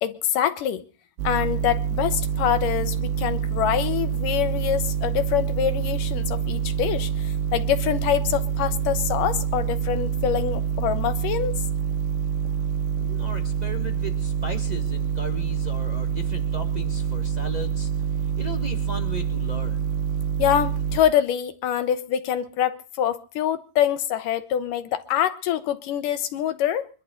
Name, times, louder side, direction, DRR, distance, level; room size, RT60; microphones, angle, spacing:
voice 1, 0.0-0.9 1.2-11.6 20.4-26.9, left 10 dB, 70° left, 2.5 m, -25 dB
sound 1, 1.2-21.0, right 8 dB, 85° right, 3.6 m, -26 dB
voice 2, 13.0-19.8, right 1 dB, 45° right, 0.5 m, -36 dB
24.5 x 12.5 x 3.9 m
omnidirectional pair, 4.4 m